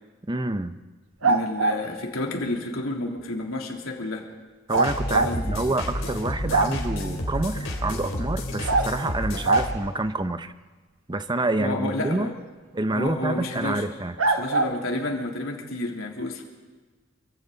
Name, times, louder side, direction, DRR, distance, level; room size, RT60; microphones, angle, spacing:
voice 1, 0.3-0.8 4.7-10.5 11.1-12.3 12.7-14.2, right 2 dB, 20° right, 10 dB, 0.8 m, -27 dB
voice 2, 1.2-4.3 5.1-5.4 11.6-12.3 12.9-13.8 14.3-16.4, left 2 dB, 90° left, 0 dB, 3.3 m, -30 dB
sound 1, 1.2-1.8 4.7-5.3 5.8-5.9 6.2-7.0 8.7-8.9 9.4-9.7 13.1-13.2 14.2-14.7, right 3 dB, 85° right, 1.4 m, -22 dB
sound 2, 4.7-9.7, left 1 dB, 75° left, 4.0 m, -30 dB
29.0 x 24.5 x 4.1 m, 1.3 s
head